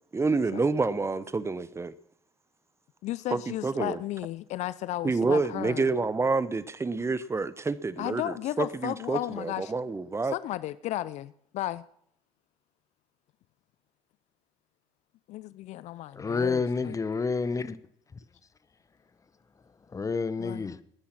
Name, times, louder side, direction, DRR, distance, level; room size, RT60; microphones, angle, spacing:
voice 1, 0.1-1.9 3.3-4.0 5.0-10.3, right 3 dB, 20° right, 0.8 m, -28 dB
voice 2, 3.0-5.9 8.0-9.7 10.2-11.9 15.3-17.0 20.4-20.7, left 14 dB, 55° left, 0.5 m, -34 dB
voice 3, 16.1-17.8 19.9-20.8, left 4 dB, 25° left, 1.0 m, -29 dB
19.0 x 9.9 x 6.0 m
hypercardioid pair, 70°, 14 cm